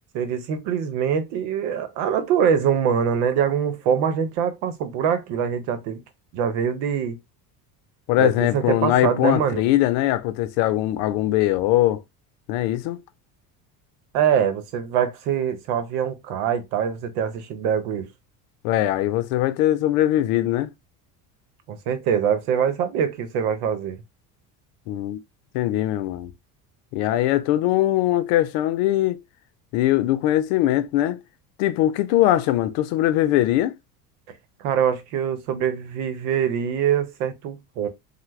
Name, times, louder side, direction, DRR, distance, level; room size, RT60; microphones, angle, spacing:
voice 1, 0.1-6.0 6.3-7.2 8.2-9.6 14.1-18.1 21.7-24.0 34.6-37.9, right 8 dB, 75° right, 0.9 m, -24 dB
voice 2, 8.1-12.0 12.5-13.0 18.6-20.7 24.9-25.2 25.5-26.3 26.9-29.2 29.7-31.2 31.6-33.7, left 14 dB, 75° left, 0.6 m, -21 dB
3.3 x 2.2 x 3.1 m
supercardioid pair, 95°, 45 cm